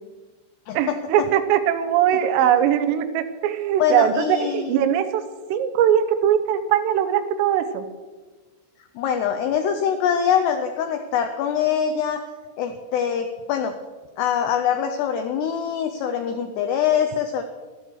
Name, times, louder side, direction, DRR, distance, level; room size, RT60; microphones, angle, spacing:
voice 1, 0.8-5.2 5.5-7.9, right 9 dB, 85° right, 9 dB, 3.5 m, -21 dB
voice 2, 3.8-4.7 9.0-12.2 12.6-13.7 14.2-17.4, left 8 dB, 85° left, 7 dB, 2.4 m, -23 dB
15.0 x 12.5 x 4.7 m, 1.4 s
omnidirectional pair, 5.7 m